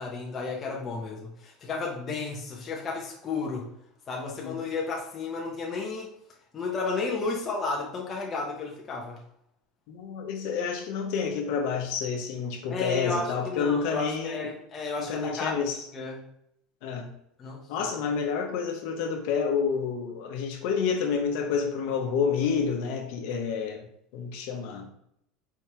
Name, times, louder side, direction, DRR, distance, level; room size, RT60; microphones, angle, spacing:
voice 1, 0.0-3.7 4.1-6.1 6.5-9.2 12.7-15.6 15.9-16.3 17.4-17.9, left 4 dB, 20° left, -2 dB, 0.6 m, -32 dB
voice 2, 9.9-14.5 15.0-15.8 16.8-17.1 17.7-23.8 24.1-24.9, left 6 dB, 60° left, 2 dB, 0.9 m, -29 dB
4.6 x 3.4 x 3.0 m, 0.74 s
cardioid pair, 175°, 0 cm